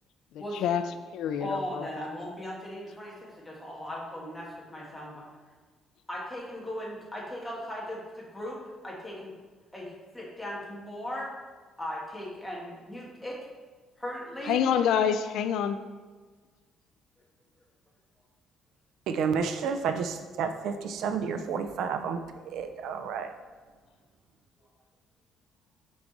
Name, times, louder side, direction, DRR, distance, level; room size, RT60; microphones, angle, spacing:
voice 1, 0.5-0.8 1.1-1.9 14.5-15.8, left 8 dB, 75° left, 10 dB, 0.3 m, -26 dB
voice 2, 1.4-5.2 6.1-8.6 8.8-9.3 9.7-11.3 11.8-13.4 14.0-14.6, equal, 5° left, -4 dB, 1.3 m, -38 dB
voice 3, 19.1-22.2 22.5-23.3, right 6 dB, 65° right, 8 dB, 0.5 m, -30 dB
6.2 x 4.8 x 4.0 m, 1.4 s
cardioid pair, 175°, 0 cm